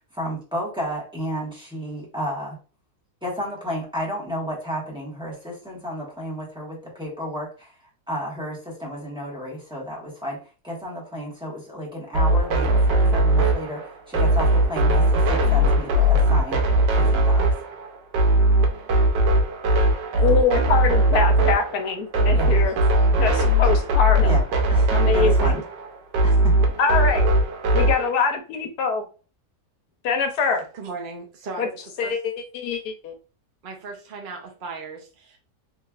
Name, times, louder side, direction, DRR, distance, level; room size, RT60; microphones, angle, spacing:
voice 1, 0.1-2.6 3.2-7.7 8.1-17.5 22.3-22.5 24.2-24.4 24.7-25.6 26.2-26.6, equal, 5° right, -4 dB, 1.1 m, -32 dB
sound 1, 12.1-28.1, right 1 dB, 90° right, 1.3 m, -19 dB
voice 2, 20.2-22.7 23.2-24.4 24.9-25.6 26.8-27.3 27.7-29.0 30.0-30.6 31.6-31.7 32.0-33.1, left 4 dB, 70° left, 5 dB, 1.2 m, -24 dB
voice 3, 30.7-32.1 33.6-35.4, right 4 dB, 55° right, 1 dB, 0.5 m, -37 dB
3.3 x 3.1 x 2.4 m, 0.35 s
omnidirectional pair, 1.8 m